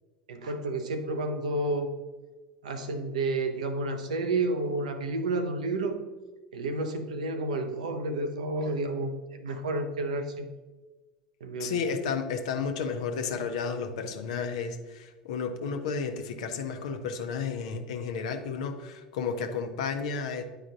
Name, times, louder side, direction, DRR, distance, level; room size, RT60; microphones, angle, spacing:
voice 1, 0.3-1.9 2.6-6.1 6.5-10.5 11.4-11.8, right 2 dB, 70° right, 7 dB, 0.7 m, -30 dB
voice 2, 11.6-20.4, left 5 dB, 65° left, 6 dB, 0.7 m, -32 dB
9.8 x 4.9 x 2.6 m, 1.2 s
figure-of-eight pair, 70°, 4 cm